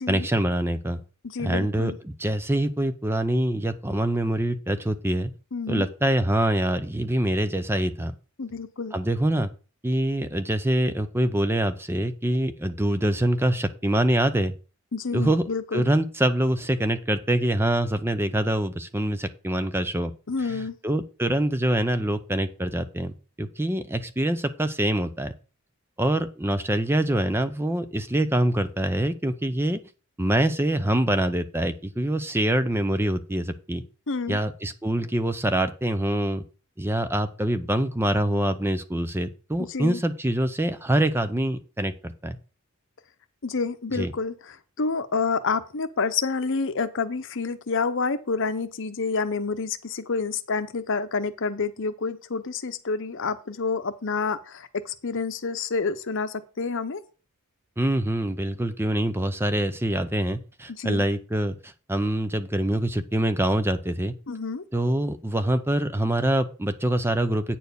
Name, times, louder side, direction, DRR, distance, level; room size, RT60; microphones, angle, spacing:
voice 1, 0.1-1.0 1.4-5.3 5.7-8.1 8.9-9.5 9.8-14.5 15.1-15.5 15.7-20.1 20.4-25.3 26.0-29.8 30.2-33.8 34.3-36.4 36.8-42.4 43.9-44.1 57.8-64.1 64.7-67.6, right 1 dB, 10° right, 11 dB, 0.6 m, -25 dB
voice 2, 1.3-2.0 5.5-5.9 8.4-8.9 14.9-15.9 20.3-20.7 34.1-34.4 39.7-40.0 43.4-57.0 60.8-61.0 64.3-64.6, left 4 dB, 60° left, 11 dB, 0.8 m, -28 dB
9.2 x 4.5 x 6.9 m, 0.35 s
head